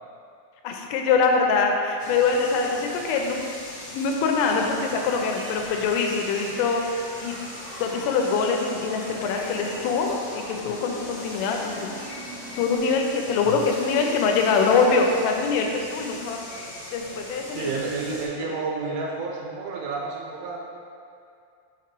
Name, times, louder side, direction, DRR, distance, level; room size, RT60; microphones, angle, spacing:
voice 1, 0.6-3.4 3.9-7.3 7.8-11.9 12.6-16.4 16.9-17.7, left 4 dB, 85° left, 2 dB, 3.2 m, -24 dB
sound 1, 2.0-18.3, left 1 dB, 70° left, 2.3 m, -40 dB
sound 2, 2.1-12.8, right 1 dB, 55° right, 2.1 m, -43 dB
voice 2, 17.5-20.6, right 4 dB, 85° right, -2 dB, 3.1 m, -30 dB
6.6 x 5.9 x 3.0 m, 2.4 s
omnidirectional pair, 5.7 m